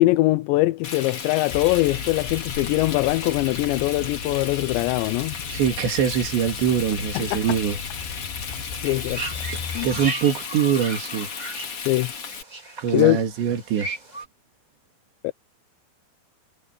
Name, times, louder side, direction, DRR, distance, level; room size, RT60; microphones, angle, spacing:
voice 1, 0.0-5.3 7.1-7.4 8.8-9.2 9.7-9.9 11.9-12.1 12.9-13.2 15.2-15.3, left 19 dB, 85° left, 2.8 m, -22 dB
Frying (food), 0.8-12.4, left 6 dB, 40° left, 2.3 m, -34 dB
sound 1, 1.5-10.1, left 6 dB, 65° left, 5.6 m, -37 dB
voice 2, 5.5-7.8 9.8-11.3 12.8-13.9, right 8 dB, 70° right, 4.6 m, -23 dB
sound 2, 8.7-14.2, right 2 dB, 40° right, 0.5 m, -36 dB
omnidirectional pair, 5.3 m